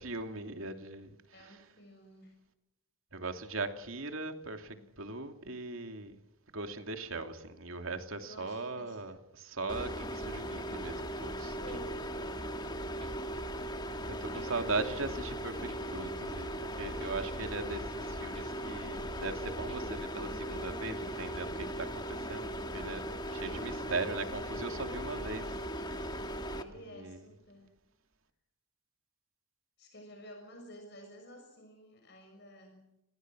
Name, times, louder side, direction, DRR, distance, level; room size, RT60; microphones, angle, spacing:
voice 1, 0.0-1.2 3.1-6.2 6.5-11.6 14.2-23.1 23.4-25.6 25.8-26.2 26.9-27.2, right 3 dB, 70° right, 2.8 m, -39 dB
voice 2, 1.3-2.4 4.7-4.9 8.2-9.0 11.6-12.1 14.3-14.7 23.3-23.9 26.5-27.7 29.8-32.9, equal, 50° left, 6.3 m, -52 dB
sound 1, 9.7-26.6, equal, 20° left, 1.6 m, -38 dB
sound 2, 11.7-11.8 12.3-12.7 13.0-13.7 14.0-14.5 15.0-15.4 15.7-15.8 16.3-16.7 17.0-17.1 17.7-18.1 18.4-18.5 19.0-19.4 19.7-19.8, equal, 25° right, 1.9 m, -50 dB
30.0 x 20.5 x 6.3 m
head